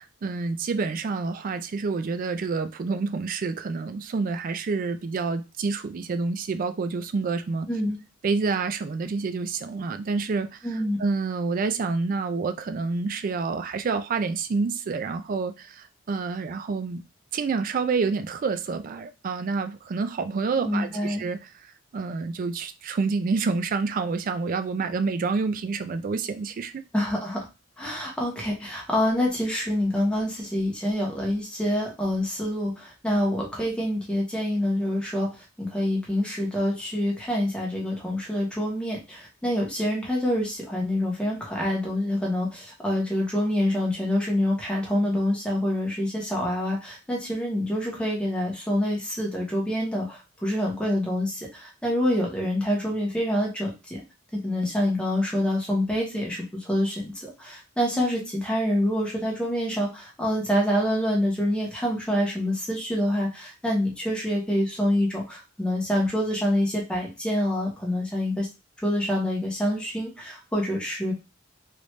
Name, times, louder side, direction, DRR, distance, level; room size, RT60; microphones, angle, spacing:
voice 1, 0.0-7.7 8.2-17.0 17.3-21.5 21.9-26.8, right 4 dB, 40° right, 0.3 m, -28 dB
voice 2, 7.7-8.0 10.6-11.0 20.6-21.2 26.9-27.5 27.8-35.3 35.6-54.0 54.4-68.5 68.8-71.1, left 1 dB, 5° left, 1.1 m, -26 dB
3.2 x 2.6 x 3.1 m
head